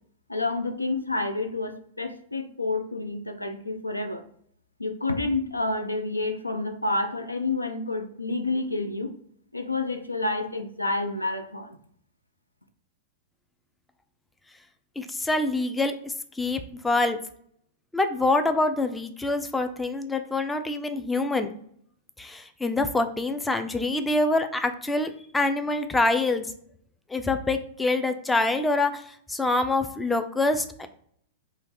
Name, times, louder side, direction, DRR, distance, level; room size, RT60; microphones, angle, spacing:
voice 1, 0.3-4.2 4.8-9.1 9.5-11.8, left 2 dB, 90° left, 8 dB, 0.4 m, -29 dB
voice 2, 15.0-17.2 17.9-21.5 22.2-26.5 27.1-30.9, left 2 dB, 10° left, 8 dB, 0.3 m, -26 dB
3.2 x 2.4 x 4.0 m, 0.63 s
figure-of-eight pair, 100°, 0 cm